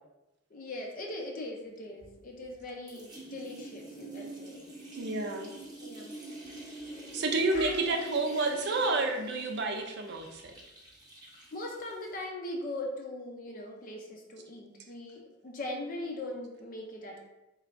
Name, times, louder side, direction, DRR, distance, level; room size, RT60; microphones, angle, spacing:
voice 1, 0.5-4.6 5.8-6.1 6.8-7.0 7.5-8.1 11.5-17.2, left 1 dB, 45° left, 0 dB, 0.6 m, -40 dB
sound 1, 2.0-2.6 2.9-12.2, right 2 dB, 20° right, 0.9 m, -46 dB
voice 2, 4.9-5.5 7.1-10.5, right 2 dB, 60° right, 4 dB, 0.5 m, -30 dB
4.5 x 3.1 x 2.5 m, 0.96 s
head